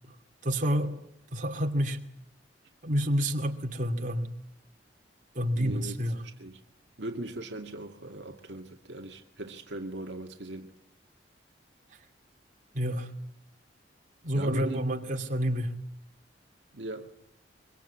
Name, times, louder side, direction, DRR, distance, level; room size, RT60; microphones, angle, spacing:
voice 1, 0.4-1.0 1.3-2.0 2.8-4.3 5.3-6.2 12.7-13.1 14.2-15.7, equal, 45° right, 2.7 m, -28 dB
voice 2, 5.5-6.6 7.0-10.7 14.3-14.8 16.7-17.1, right 1 dB, 70° right, 2.2 m, -39 dB
24.5 x 24.0 x 8.6 m
head